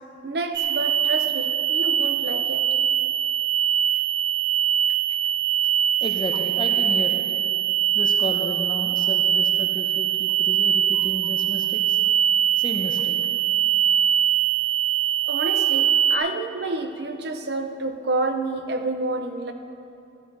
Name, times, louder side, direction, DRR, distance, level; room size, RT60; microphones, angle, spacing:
voice 1, 0.2-2.7 10.9-11.0 15.2-19.5, right 2 dB, 55° right, 6 dB, 0.8 m, -29 dB
sound 1, 0.5-16.2, right 10 dB, 20° right, 0.5 m, -22 dB
voice 2, 6.0-7.2 7.9-12.0 12.6-13.2, equal, 25° left, 2 dB, 0.9 m, -32 dB
14.0 x 11.5 x 4.1 m, 2.7 s
head